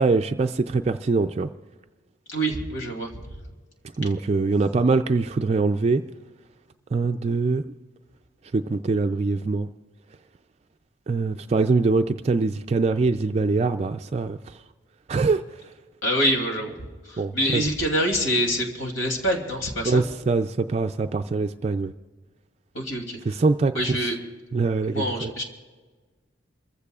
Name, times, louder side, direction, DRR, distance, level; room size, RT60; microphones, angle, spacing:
voice 1, 0.0-1.5 4.0-6.0 6.9-7.6 8.5-9.7 11.1-14.6 15.1-15.4 17.2-17.6 19.9-21.9 23.3-24.1 24.5-25.3, right 3 dB, 30° right, 7 dB, 0.3 m, -23 dB
voice 2, 2.3-3.2 16.0-16.8 17.0-20.0 22.7-23.2 23.7-24.2 24.9-25.4, equal, 85° left, 2 dB, 2.8 m, -25 dB
28.0 x 15.0 x 2.4 m, 1.4 s
head